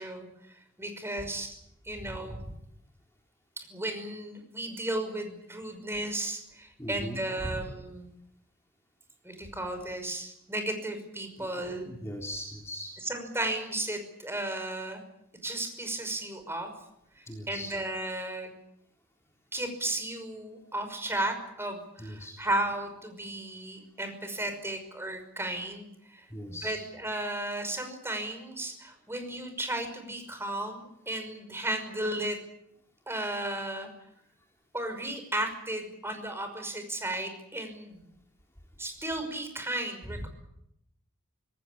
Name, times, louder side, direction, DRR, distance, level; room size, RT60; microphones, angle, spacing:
voice 1, 0.0-1.6 1.8-2.4 3.6-8.1 9.2-11.9 13.0-15.0 15.4-16.7 17.2-18.5 19.5-32.4 33.1-33.9 34.7-38.1 38.8-40.3, right 1 dB, 10° right, 7 dB, 5.6 m, -34 dB
voice 2, 2.0-2.4 6.8-7.2 7.5-7.6 11.4-11.5 11.9-12.9 17.3-17.7 22.0-22.4 26.3-26.8 40.2-40.3, equal, 10° left, 0 dB, 3.7 m, -39 dB
26.5 x 19.0 x 8.8 m, 0.79 s
head